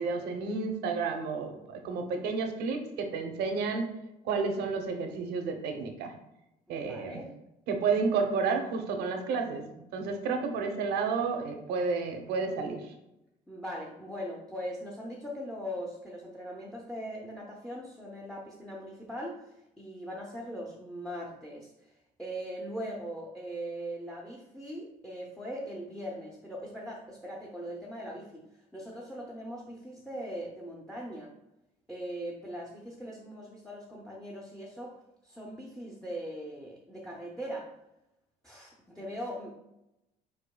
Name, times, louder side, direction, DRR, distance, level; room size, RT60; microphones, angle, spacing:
voice 1, 0.0-3.9 4.2-6.1 6.7-7.2 7.7-12.9, right 4 dB, 80° right, 4 dB, 0.8 m, -31 dB
voice 2, 6.7-7.3 10.1-10.4 13.5-28.4 28.7-31.3 31.9-34.9 35.2-37.7 38.4-39.5, equal, 5° left, -1 dB, 0.6 m, -40 dB
4.9 x 4.6 x 2.3 m, 0.89 s
cardioid pair, 110°, 17 cm